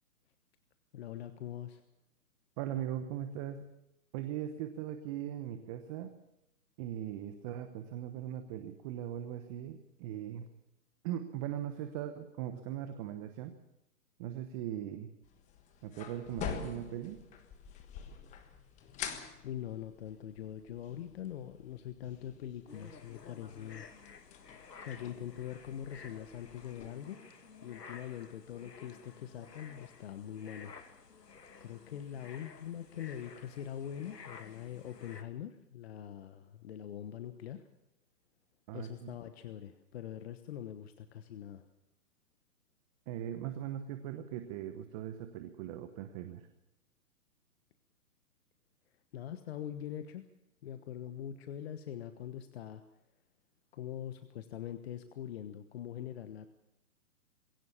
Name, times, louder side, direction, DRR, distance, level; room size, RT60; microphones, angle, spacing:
voice 1, 0.9-1.8 19.4-23.9 24.8-27.2 27.6-30.7 31.6-37.6 38.7-41.6 49.1-50.3 50.6-52.8 53.7-56.5, left 10 dB, 40° left, 10 dB, 1.3 m, -43 dB
voice 2, 2.6-3.7 4.1-6.1 6.8-10.5 11.0-13.5 14.2-15.1 15.8-17.2 38.7-39.2 43.1-46.5, right 11 dB, 20° right, 9 dB, 1.0 m, -39 dB
sound 1, 15.2-26.9, left 8 dB, 15° left, 1.4 m, -47 dB
sound 2, 22.7-35.2, left 5 dB, 90° left, 2.1 m, -53 dB
21.0 x 17.0 x 7.3 m, 0.87 s
hypercardioid pair, 145°, 47 cm